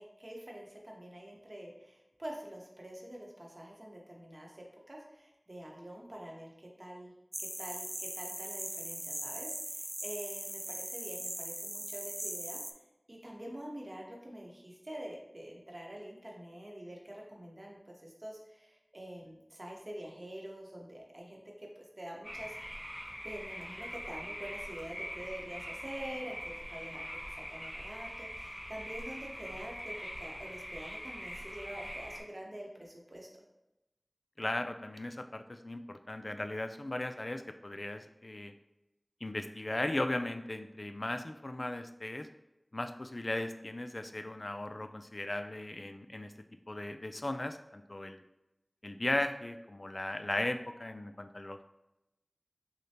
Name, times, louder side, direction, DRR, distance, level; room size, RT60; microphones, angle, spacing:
voice 1, 0.0-7.1 7.4-12.6 13.1-22.8 23.2-33.4, right 1 dB, 50° right, -1 dB, 0.9 m, -46 dB
sound 1, 7.3-12.7, right 1 dB, 25° right, 0.4 m, -40 dB
sound 2, 22.2-32.2, equal, 5° left, 1.4 m, -43 dB
voice 2, 34.4-38.5 39.2-42.3 42.7-46.3 46.7-48.2 48.8-51.6, left 1 dB, 50° left, 7 dB, 0.3 m, -37 dB
6.4 x 2.2 x 2.8 m, 0.91 s
wide cardioid pair, 45°, 0 cm